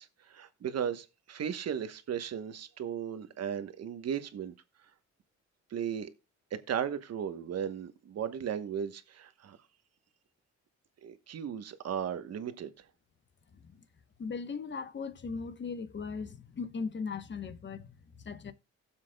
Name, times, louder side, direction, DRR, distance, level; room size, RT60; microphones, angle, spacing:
voice 1, 0.0-4.5 5.7-6.1 6.5-9.6 11.0-12.7, right 8 dB, 55° right, 1.2 m, -36 dB
voice 2, 14.2-18.5, left 5 dB, 40° left, 1.1 m, -38 dB
16.5 x 7.4 x 2.3 m
cardioid pair, 90°, 30 cm